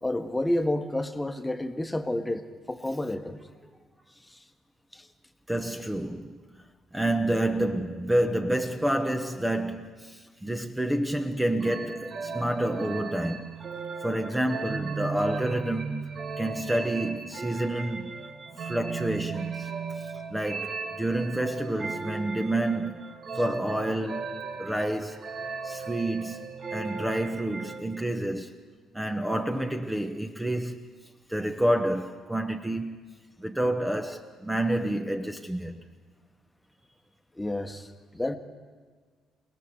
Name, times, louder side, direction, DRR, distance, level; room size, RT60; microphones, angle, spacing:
voice 1, 0.0-3.4 4.3-4.4 4.9-5.1 37.3-38.4, left 1 dB, 10° left, 1.5 m, -30 dB
voice 2, 5.5-6.6 6.9-13.5 14.0-18.2 18.6-25.3 25.6-28.6 28.9-30.9 31.3-33.1 33.4-35.8, right 1 dB, 10° right, 1.1 m, -29 dB
sound 1, 11.6-28.0, right 5 dB, 45° right, 1.2 m, -36 dB
29.5 x 18.5 x 4.9 m
figure-of-eight pair, 45°, 0 cm